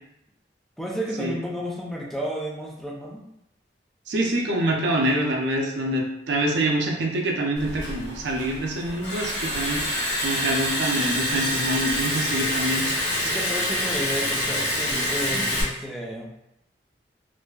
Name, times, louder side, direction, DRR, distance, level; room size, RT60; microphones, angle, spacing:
voice 1, 0.8-3.2 13.2-16.3, equal, ahead, -3 dB, 0.3 m, -32 dB
voice 2, 4.1-12.9, right 1 dB, 80° right, 0 dB, 0.4 m, -26 dB
Liquid, 7.6-15.6, left 1 dB, 60° left, 0.9 m, -26 dB
2.5 x 2.3 x 2.2 m, 0.81 s
head